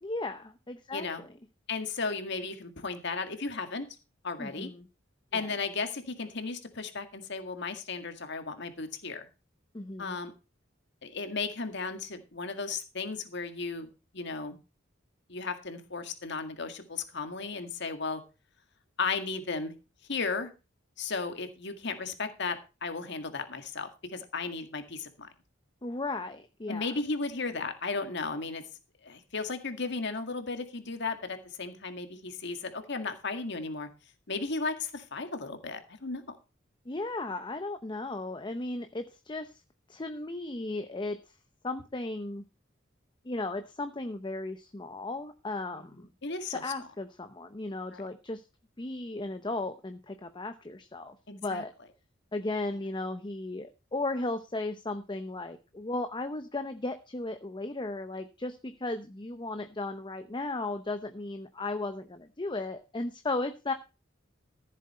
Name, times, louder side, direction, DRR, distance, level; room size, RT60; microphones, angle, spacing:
voice 1, 0.0-1.3 4.4-4.9 5.3-5.5 9.7-10.2 25.8-26.9 36.9-39.5 39.9-41.2 41.6-42.4 43.2-46.1 46.5-48.4 48.8-51.7 52.3-63.7, left 2 dB, 25° left, 8 dB, 0.7 m, -35 dB
voice 2, 1.7-3.9 4.2-4.7 5.3-9.3 10.0-10.3 11.0-14.6 15.3-18.2 19.0-19.7 20.1-20.5 21.0-25.3 26.7-28.6 29.0-33.9 34.3-36.4 45.7-46.6 47.9-48.0 51.3-51.6, left 4 dB, 60° left, 8 dB, 1.9 m, -35 dB
14.5 x 7.7 x 4.3 m, 0.30 s
head